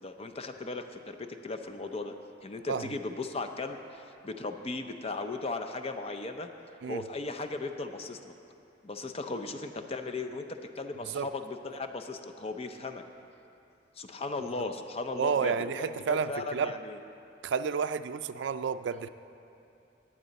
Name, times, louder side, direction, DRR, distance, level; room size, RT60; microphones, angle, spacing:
voice 1, 0.0-2.1 2.4-6.5 6.9-8.3 8.8-13.0 14.0-17.0, left 3 dB, 35° left, 7 dB, 0.5 m, -37 dB
voice 2, 15.1-16.8 17.4-19.1, right 6 dB, 70° right, 12 dB, 0.4 m, -31 dB
15.5 x 8.8 x 4.1 m, 2.7 s
head